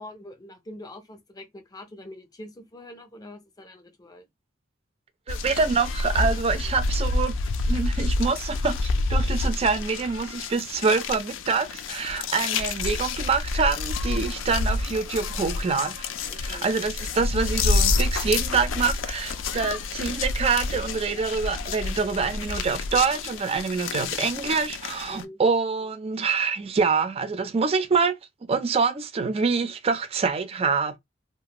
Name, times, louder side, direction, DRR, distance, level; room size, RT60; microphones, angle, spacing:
voice 1, 0.0-4.3 16.3-16.7 25.1-25.4, left 1 dB, 20° left, 0.5 m, -44 dB
sound 1, 5.3-25.2, left 3 dB, 85° left, 0.4 m, -28 dB
voice 2, 5.3-7.4 7.7-16.1 16.4-28.2 28.5-31.0, right 5 dB, 30° right, 0.4 m, -26 dB
2.4 x 2.3 x 2.8 m
head